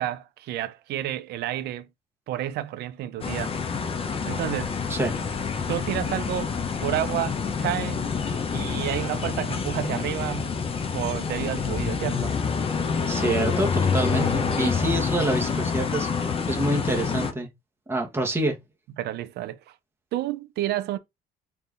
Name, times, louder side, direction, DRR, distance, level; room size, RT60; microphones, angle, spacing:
voice 1, 0.0-1.9 2.3-3.6 4.3-4.8 5.7-6.5 6.8-8.0 8.5-10.6 10.9-12.4 14.5-14.9 19.0-19.7 20.1-21.0, right 13 dB, 75° right, 0.6 m, -30 dB
sound 1, 3.2-17.3, left 5 dB, 35° left, 0.8 m, -27 dB
voice 2, 13.1-16.1 16.5-17.5 17.9-18.6, right 1 dB, 15° right, 1.2 m, -26 dB
4.3 x 3.6 x 2.5 m
cardioid pair, 110°, 17 cm